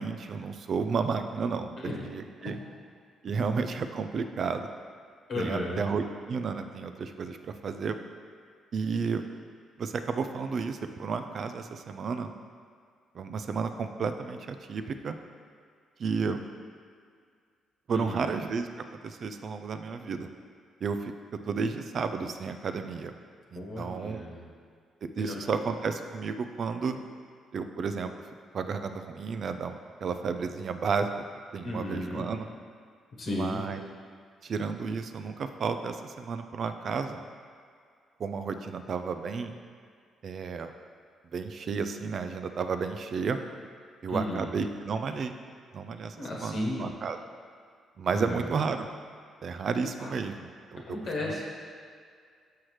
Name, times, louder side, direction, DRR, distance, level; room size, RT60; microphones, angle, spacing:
voice 1, 0.0-2.6 3.2-4.7 5.4-8.0 8.7-9.2 9.8-12.3 13.1-15.2 16.0-16.5 17.9-18.7 19.0-20.3 20.8-21.1 21.5-23.1 23.5-24.2 25.2-27.0 27.5-28.1 28.5-31.1 31.5-32.5 33.3-33.9 34.4-37.2 38.2-39.5 40.2-40.7 41.3-43.4 44.0-45.3 45.7-47.2 48.0-48.9 49.4-50.8 51.2-51.4, right 5 dB, 55° right, 8 dB, 0.4 m, -32 dB
voice 2, 5.3-5.8 17.9-18.3 23.6-24.5 25.2-25.6 31.6-32.3 33.2-33.6 44.1-44.5 46.2-46.9 48.1-48.4 50.0-50.1 50.9-51.5, left 1 dB, 60° left, -3 dB, 1.2 m, -34 dB
6.3 x 5.7 x 3.2 m, 2.1 s
cardioid pair, 90°, 0 cm